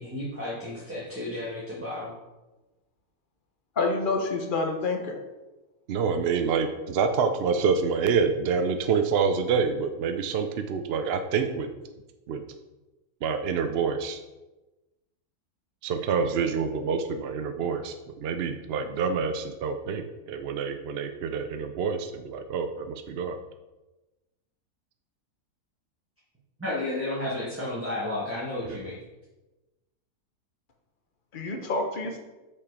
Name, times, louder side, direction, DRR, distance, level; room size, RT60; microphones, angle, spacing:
voice 1, 0.0-2.1 26.6-29.0, left 1 dB, 10° right, -7 dB, 1.5 m, -32 dB
voice 2, 3.8-5.2 31.3-32.2, left 3 dB, 40° left, 4 dB, 1.0 m, -28 dB
voice 3, 5.9-11.7 12.3-12.4 13.2-14.2 15.8-23.4 28.6-28.8, right 5 dB, 65° right, 7 dB, 0.6 m, -27 dB
6.6 x 5.8 x 4.8 m, 1.1 s
omnidirectional pair, 1.6 m